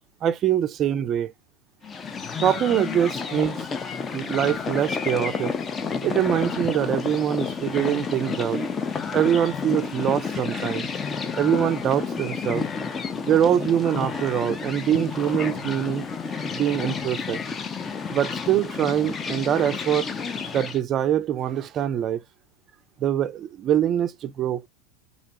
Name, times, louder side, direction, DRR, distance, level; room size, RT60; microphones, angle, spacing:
voice 1, 0.2-1.3 2.4-3.7 4.1-5.5 6.0-8.6 9.1-10.9 11.4-12.6 13.2-16.1 16.5-17.4 18.1-20.1 20.5-22.2 23.0-24.6, right 10 dB, 40° right, 0.3 m, -24 dB
sound 1, 1.8-20.8, left 5 dB, 25° left, 0.4 m, -30 dB
2.6 x 2.1 x 2.8 m
hypercardioid pair, 90°, 0 cm